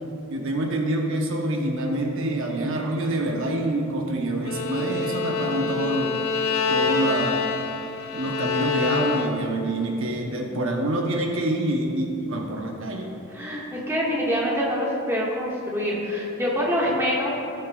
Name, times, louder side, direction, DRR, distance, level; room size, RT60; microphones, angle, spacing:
voice 1, 0.3-6.2 6.7-7.6 8.1-13.1, right 1 dB, 65° right, 1 dB, 0.9 m, -26 dB
Bowed string instrument, 4.4-9.6, left 5 dB, 75° left, 0.8 m, -26 dB
voice 2, 13.3-17.3, equal, 15° right, -5 dB, 1.6 m, -25 dB
18.0 x 6.4 x 2.3 m, 2.8 s
head